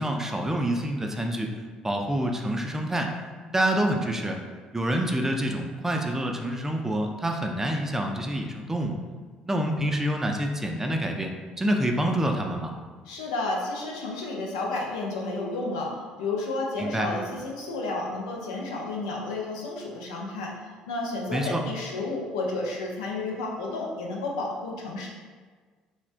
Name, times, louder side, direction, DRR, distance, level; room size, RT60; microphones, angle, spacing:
voice 1, 0.0-1.5 1.8-3.1 3.5-4.4 4.7-9.0 9.5-11.3 11.6-12.7 16.8-17.1 21.3-21.6, right 1 dB, 15° right, 3 dB, 0.4 m, -27 dB
voice 2, 13.1-15.9 16.2-20.5 20.9-25.1, left 2 dB, 85° left, -1 dB, 0.4 m, -31 dB
3.1 x 2.1 x 2.5 m, 1.5 s
hypercardioid pair, 60°, 3 cm